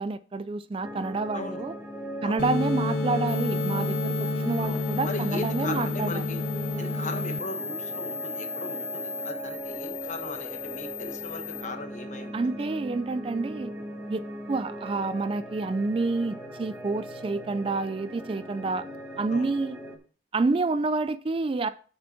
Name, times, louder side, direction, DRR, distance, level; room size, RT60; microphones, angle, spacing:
voice 1, 0.0-1.7 2.2-6.3 12.3-13.7 14.1-18.8 19.2-19.8 20.3-21.7, right 3 dB, 30° right, 0.3 m, -28 dB
sound 1, 0.8-20.0, right 1 dB, 15° right, 1.5 m, -39 dB
voice 2, 1.3-1.6 2.2-2.5 4.6-6.4 6.8-12.7 19.3-19.5, left 3 dB, 40° left, 1.2 m, -38 dB
sound 2, 2.4-7.4, left 2 dB, 60° left, 0.5 m, -29 dB
sound 3, 3.3-11.6, left 5 dB, 15° left, 1.0 m, -37 dB
7.1 x 5.0 x 7.1 m
head